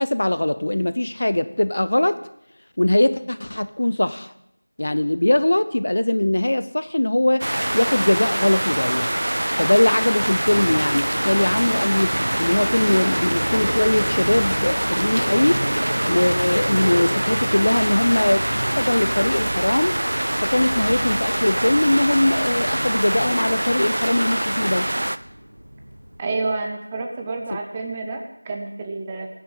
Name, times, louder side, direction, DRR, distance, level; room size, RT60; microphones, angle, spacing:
voice 1, 0.0-2.2 2.8-4.3 4.8-7.5 7.7-9.1 9.6-15.6 16.1-20.0 20.4-24.9, left 1 dB, 40° left, 13 dB, 0.6 m, -21 dB
sound 1, 7.4-25.2, right 1 dB, 55° right, 0.5 m, -24 dB
sound 2, 10.4-26.2, equal, 80° right, 1.4 m, -31 dB
voice 2, 26.2-29.3, right 3 dB, 10° right, 3 dB, 0.5 m, -29 dB
9.5 x 9.2 x 6.3 m, 0.76 s
figure-of-eight pair, 175°, 0 cm